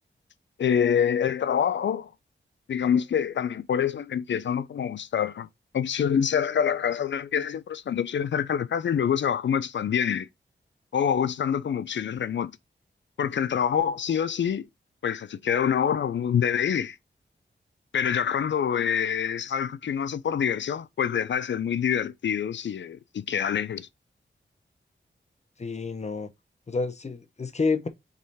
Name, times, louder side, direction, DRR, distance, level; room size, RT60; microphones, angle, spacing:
voice 1, 0.6-2.1 2.7-5.5 5.7-10.3 10.9-12.5 13.2-14.7 15.0-17.0 17.9-23.9, left 8 dB, 70° left, 0.4 m, -26 dB
voice 2, 25.6-26.3 26.7-27.9, left 4 dB, 35° left, 0.8 m, -29 dB
3.7 x 3.1 x 4.0 m
wide cardioid pair, 65°, 20 cm